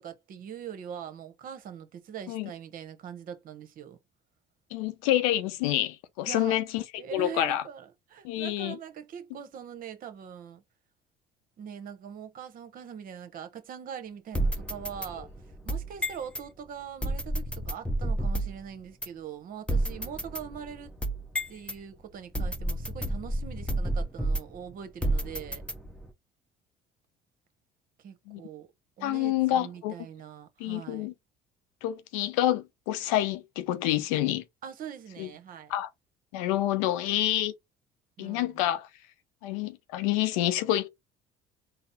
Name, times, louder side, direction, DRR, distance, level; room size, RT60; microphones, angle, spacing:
voice 1, 0.0-4.0 6.3-6.5 7.0-10.6 11.6-15.3 15.6-20.9 21.5-25.6 28.0-28.7 29.0-31.1 34.6-35.7 38.2-38.5, right 8 dB, 55° right, 0.9 m, -42 dB
voice 2, 4.7-7.6 8.2-8.8 28.3-28.4 29.0-29.9 30.6-31.1 31.8-34.4 35.2-35.3 35.7-35.9 36.3-37.5 38.2-38.9 39.4-40.9, left 13 dB, 85° left, 0.5 m, -28 dB
sound 1, 14.3-16.5 17.0-18.6 19.0-19.1 19.7-21.8 22.3-24.6 25.0-26.1, right 1 dB, 5° left, 0.8 m, -30 dB
4.0 x 2.0 x 4.0 m
supercardioid pair, 75°, 17 cm